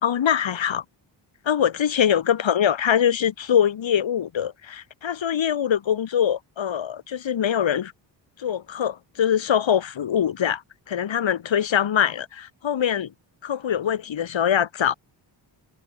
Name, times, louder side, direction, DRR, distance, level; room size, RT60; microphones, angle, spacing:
voice 1, 0.0-0.8 1.5-7.9 8.4-10.6 10.9-13.1 13.4-14.9, left 9 dB, 80° left, 5.9 m, -23 dB
wide cardioid pair, 135°, 45 cm